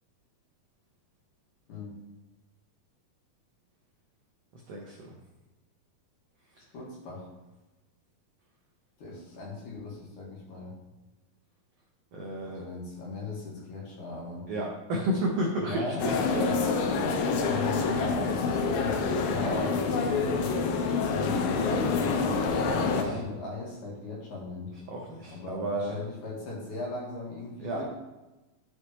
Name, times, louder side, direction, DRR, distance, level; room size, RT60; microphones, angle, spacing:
voice 1, 4.7-5.2 12.1-12.6 14.5-16.5 17.3-17.7 22.6-23.2 24.9-25.9 27.6-27.8, right 1 dB, 75° right, -2 dB, 1.4 m, -32 dB
voice 2, 6.7-7.3 9.0-10.7 12.4-14.5 15.6-16.1 17.5-20.3 21.1-24.7 25.3-27.8, left 3 dB, 60° left, -3 dB, 3.1 m, -38 dB
sound 1, 16.0-23.0, left 4 dB, 80° left, 2.6 m, -27 dB
11.5 x 5.5 x 3.1 m, 1.1 s
omnidirectional pair, 4.3 m